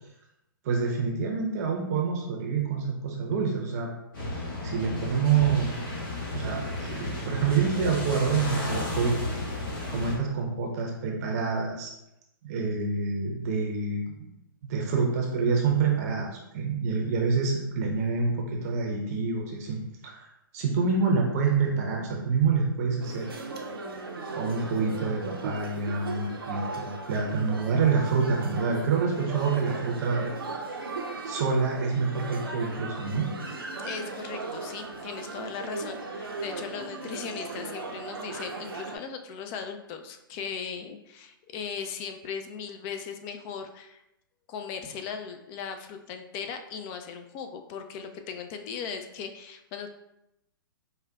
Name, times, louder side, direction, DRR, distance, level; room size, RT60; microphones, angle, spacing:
voice 1, 0.6-3.9 4.6-5.7 6.3-9.2 9.9-11.9 12.4-14.3 14.6-20.3 20.5-23.3 24.3-30.3 31.2-33.3, right 5 dB, 45° right, 0 dB, 0.6 m, -27 dB
sound 1, 4.1-10.2, left 1 dB, 65° left, 1.3 m, -33 dB
sound 2, 23.0-39.0, right 3 dB, 90° right, 0.5 m, -37 dB
voice 2, 33.8-44.0 44.5-49.9, left 6 dB, 30° left, 6 dB, 0.3 m, -38 dB
4.8 x 2.2 x 2.2 m, 0.85 s
hypercardioid pair, 120°, 12 cm